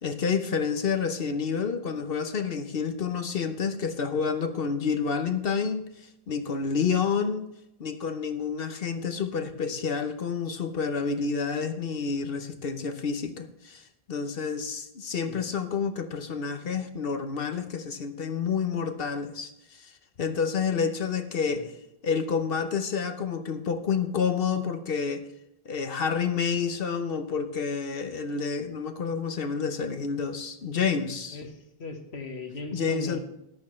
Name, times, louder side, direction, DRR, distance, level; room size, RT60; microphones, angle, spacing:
voice 1, 0.0-5.8 6.3-7.5 7.8-19.9 20.2-21.7 22.0-25.2 25.6-31.4 32.7-33.2, left 6 dB, 65° left, 8 dB, 1.0 m, -29 dB
voice 2, 31.3-33.2, left 2 dB, 85° left, 5 dB, 1.7 m, -38 dB
14.0 x 11.0 x 3.2 m, 0.86 s
omnidirectional pair, 1.1 m